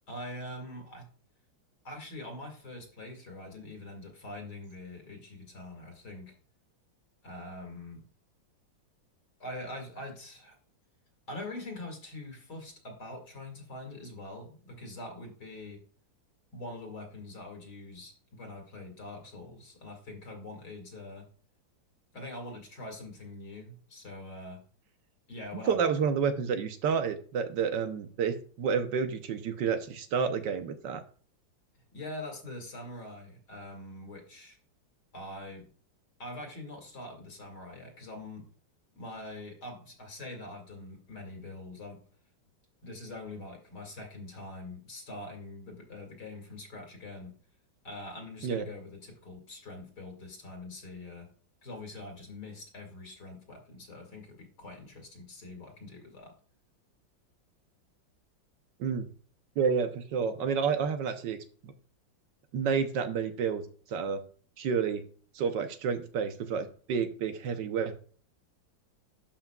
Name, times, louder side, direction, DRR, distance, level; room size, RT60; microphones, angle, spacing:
voice 1, 0.1-1.1 1.8-6.3 7.2-8.0 9.4-10.6 11.3-15.8 16.5-21.3 22.1-24.6 25.3-25.8 31.9-34.6 35.1-35.7 36.2-38.5 38.9-42.0 42.8-47.3 47.8-51.3 51.6-56.3, left 2 dB, 55° left, 3 dB, 2.6 m, -44 dB
voice 2, 25.7-31.0 48.4-48.6 58.8-59.1 59.6-61.4 61.6-61.7 62.5-63.6 63.9-64.2 64.6-65.0 65.3-68.0, right 6 dB, 70° right, 8 dB, 1.3 m, -30 dB
12.0 x 5.6 x 2.3 m, 0.42 s
omnidirectional pair, 2.1 m